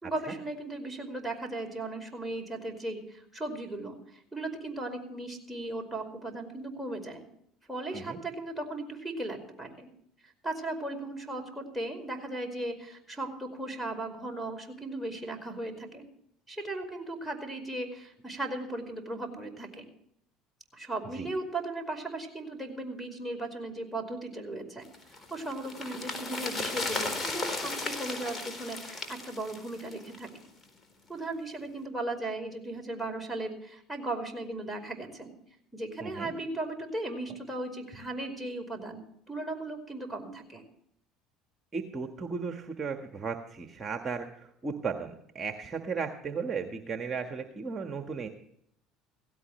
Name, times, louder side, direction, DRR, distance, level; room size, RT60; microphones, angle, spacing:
voice 1, 0.0-7.2 7.7-9.9 10.2-16.1 16.5-19.9 20.7-24.9 25.3-30.3 31.1-35.3 35.7-40.6, right 2 dB, ahead, 1 dB, 5.1 m, -37 dB
sound 1, 24.9-30.4 30.6-30.7, left 3 dB, 30° left, 4.1 m, -35 dB
voice 2, 36.0-36.3 41.7-48.3, right 5 dB, 30° right, 5 dB, 1.6 m, -35 dB
17.0 x 17.0 x 3.2 m, 0.71 s
hypercardioid pair, 75°, 0 cm